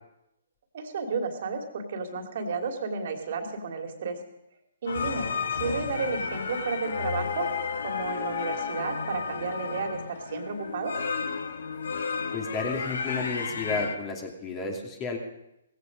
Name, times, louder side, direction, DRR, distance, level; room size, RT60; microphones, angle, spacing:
voice 1, 0.7-4.2 4.8-5.3 5.5-7.5 7.8-11.0, right 4 dB, 55° right, 4 dB, 2.7 m, -32 dB
sound 1, 4.9-14.0, left 5 dB, 70° left, 1.6 m, -32 dB
voice 2, 12.3-15.2, left 4 dB, 25° left, 1 dB, 2.6 m, -32 dB
17.0 x 16.0 x 5.3 m, 0.86 s
hypercardioid pair, 135°, 0 cm